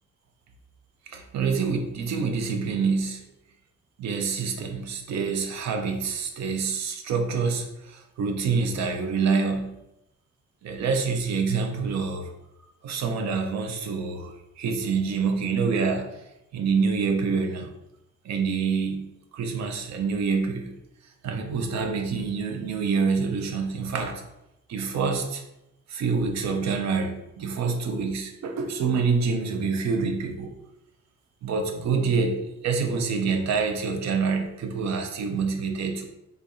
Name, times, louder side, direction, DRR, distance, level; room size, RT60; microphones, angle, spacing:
voice 1, 1.1-3.2 4.0-9.8 10.6-12.3 12.8-16.1 16.5-17.7 18.2-20.8 21.2-24.2 24.7-25.4 25.9-30.5 31.4-36.1, right 5 dB, 65° right, 4 dB, 0.7 m, -26 dB
3.3 x 2.4 x 3.9 m, 0.89 s
cardioid pair, 90°, 30 cm